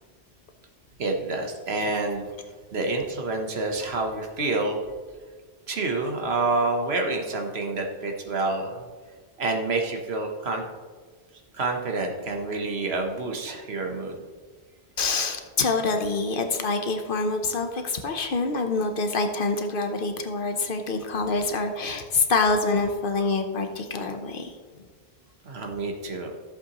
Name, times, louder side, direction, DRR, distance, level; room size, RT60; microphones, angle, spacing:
voice 1, 1.0-2.3 2.7-4.8 5.7-8.8 9.4-10.6 11.5-14.2 25.4-26.3, right 3 dB, 70° right, 3 dB, 1.4 m, -28 dB
voice 2, 15.0-24.5, left 3 dB, 55° left, 6 dB, 1.0 m, -26 dB
14.0 x 7.7 x 3.0 m, 1.5 s
omnidirectional pair, 1.1 m